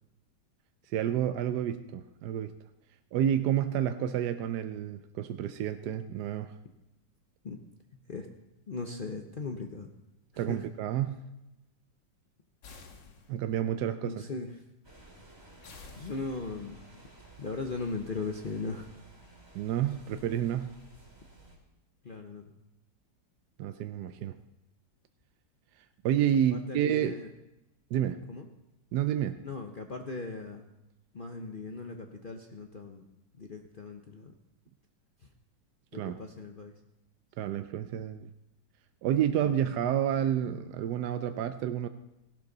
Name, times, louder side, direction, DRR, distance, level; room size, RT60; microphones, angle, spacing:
voice 1, 0.9-2.5 3.1-6.5 10.4-11.3 13.3-14.3 19.5-20.7 23.6-24.4 26.0-27.2 27.9-28.3 28.9-29.4 35.9-36.2 37.4-38.3 39.0-41.9, right 10 dB, 75° right, 9 dB, 1.1 m, -30 dB
voice 2, 8.7-9.9 10.3-10.6 14.0-14.5 16.0-16.8 17.4-18.9 22.0-22.5 26.5-27.3 28.3-28.5 29.4-30.6 31.1-33.0 33.4-34.3 35.9-36.7, left 3 dB, 45° left, 4 dB, 0.7 m, -38 dB
sound 1, 12.6-13.6 15.6-16.7, left 4 dB, 85° left, 2.1 m, -51 dB
sound 2, 14.8-21.6, right 2 dB, 15° right, 2.5 m, -54 dB
16.0 x 12.0 x 4.0 m, 0.92 s
omnidirectional pair, 1.9 m